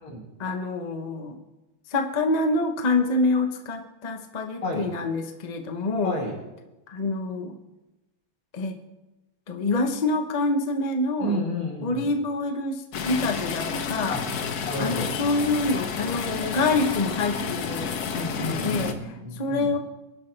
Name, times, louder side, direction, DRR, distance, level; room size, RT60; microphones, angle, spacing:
voice 1, 0.4-1.4 1.9-6.2 6.9-7.6 8.5-8.8 9.5-11.4 11.8-14.2 14.8-17.9 18.4-19.0 19.3-19.8, left 2 dB, 30° left, 5 dB, 0.7 m, -26 dB
voice 2, 6.0-6.3 11.2-12.1 14.1-14.2 14.6-15.1 18.0-19.7, left 1 dB, 90° left, -1 dB, 4.3 m, -31 dB
sound 1, 12.9-18.9, left 6 dB, 55° left, 1.3 m, -30 dB
24.0 x 11.0 x 3.4 m, 1.0 s
omnidirectional pair, 2.3 m